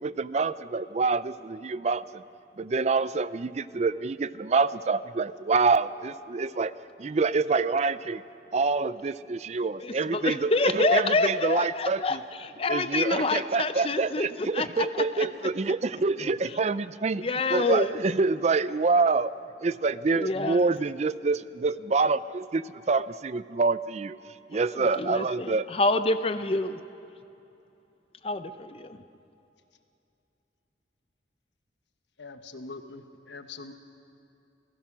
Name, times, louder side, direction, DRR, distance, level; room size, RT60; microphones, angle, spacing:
voice 1, 0.0-2.2 2.6-6.7 7.0-8.2 8.5-12.2 12.7-17.2 17.5-19.3 19.6-24.2 24.5-25.6, right 4 dB, 40° right, 16 dB, 0.4 m, -26 dB
voice 2, 9.8-15.3 16.4-16.6 17.2-18.0 20.1-20.7 24.5-26.8 28.2-29.0, left 3 dB, 30° left, 10 dB, 0.7 m, -28 dB
voice 3, 32.2-33.7, left 3 dB, 85° left, 7 dB, 1.3 m, -43 dB
28.0 x 16.5 x 6.1 m, 2.8 s
head